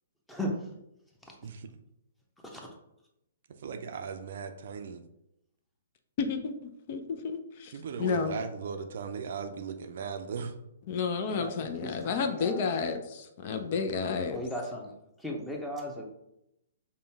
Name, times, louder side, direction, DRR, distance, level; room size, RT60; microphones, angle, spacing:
voice 1, 0.3-0.6 2.5-2.6 11.3-12.7 14.3-14.9 15.2-16.0, equal, 5° left, 0 dB, 0.8 m, -36 dB
voice 2, 3.6-5.0 7.7-10.5, right 6 dB, 55° right, 7 dB, 0.4 m, -37 dB
voice 3, 6.2-7.7 8.0-8.4 10.9-14.4, left 5 dB, 45° left, 7 dB, 0.5 m, -31 dB
5.2 x 2.2 x 3.4 m, 0.84 s
figure-of-eight pair, 125°, 0 cm